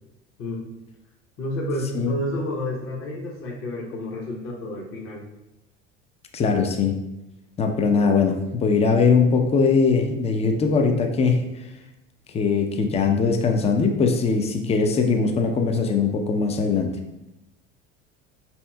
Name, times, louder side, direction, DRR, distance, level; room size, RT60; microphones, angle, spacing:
voice 1, 1.4-5.3, left 1 dB, 35° left, -3 dB, 0.8 m, -30 dB
voice 2, 6.3-6.9 7.6-11.4 12.3-16.9, left 5 dB, 15° left, 4 dB, 0.4 m, -21 dB
5.2 x 2.8 x 2.2 m, 0.93 s
hypercardioid pair, 75°, 37 cm